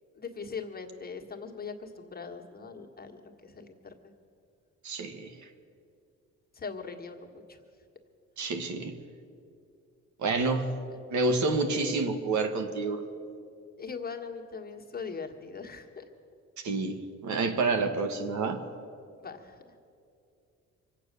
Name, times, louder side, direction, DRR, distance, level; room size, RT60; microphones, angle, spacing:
voice 1, 0.1-3.9 6.5-7.6 10.4-10.5 13.8-16.1 19.2-19.6, left 5 dB, 30° left, 2 dB, 1.6 m, -41 dB
voice 2, 4.8-5.3 8.4-9.0 10.2-10.7 11.1-13.0 16.6-18.6, right 3 dB, 70° right, 6 dB, 1.5 m, -28 dB
23.5 x 8.5 x 6.7 m, 2.5 s
cardioid pair, 90°, 30 cm